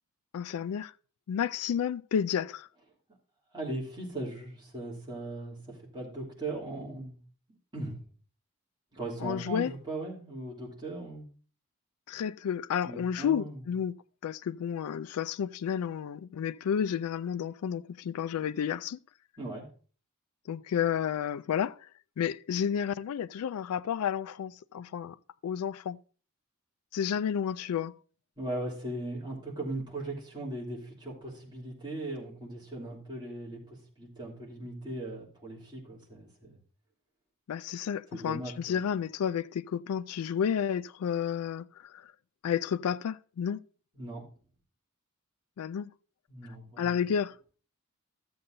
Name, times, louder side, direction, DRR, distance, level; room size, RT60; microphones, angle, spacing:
voice 1, 0.3-0.9 1.3-2.7 9.2-9.7 12.1-14.0 14.2-19.0 20.5-21.9 22.2-25.2 25.4-26.0 26.9-27.9 37.5-42.1 42.4-43.6 45.6-45.9 46.8-47.3, left 8 dB, 90° left, 0.3 m, -31 dB
voice 2, 3.5-5.6 5.9-7.2 7.7-8.0 8.9-11.3 12.8-13.6 19.4-19.6 28.4-36.6 38.1-38.8 44.0-44.2 46.3-47.0, right 2 dB, 20° right, 2.9 m, -38 dB
13.5 x 7.7 x 2.6 m
head